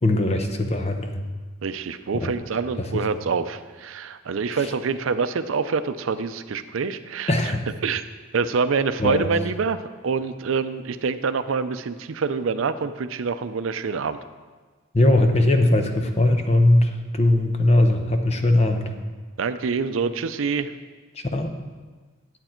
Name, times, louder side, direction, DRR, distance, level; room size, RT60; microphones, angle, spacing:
voice 1, 0.0-1.2 2.1-2.3 2.8-3.0 4.5-4.7 7.3-7.6 9.0-9.3 14.9-18.8 21.3-21.5, left 1 dB, 30° left, 5 dB, 0.8 m, -20 dB
voice 2, 1.6-7.3 7.8-8.0 8.3-14.2 19.4-20.7, right 5 dB, 75° right, 11 dB, 0.5 m, -26 dB
10.0 x 8.0 x 4.4 m, 1.4 s
head